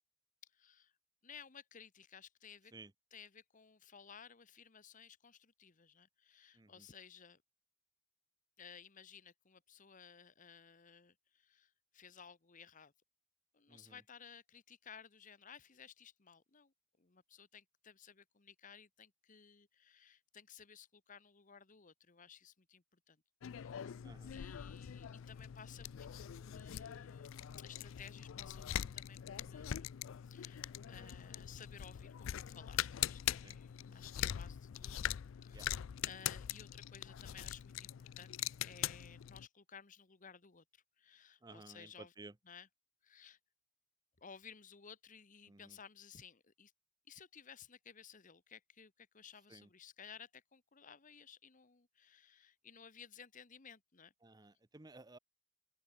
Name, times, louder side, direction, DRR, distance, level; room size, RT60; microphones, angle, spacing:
voice 1, 0.5-0.9 1.2-2.7 3.1-7.4 8.6-12.9 13.5-23.2 23.5-23.9 24.3-35.1 35.4-35.8 36.0-42.1 42.5-42.7 43.0-43.4 44.2-46.7 47.1-54.1, left 7 dB, 40° left, 1.1 m, -57 dB
voice 2, 6.5-6.9 13.7-14.0 24.0-24.3 30.9-31.1 33.4-33.6 33.8-34.1 35.5-35.7 41.4-42.4 45.5-45.8 49.5-49.7 54.2-55.2, right 2 dB, 20° right, 0.8 m, -56 dB
sound 1, 23.4-39.5, left 11 dB, 70° left, 0.4 m, -42 dB
open air
head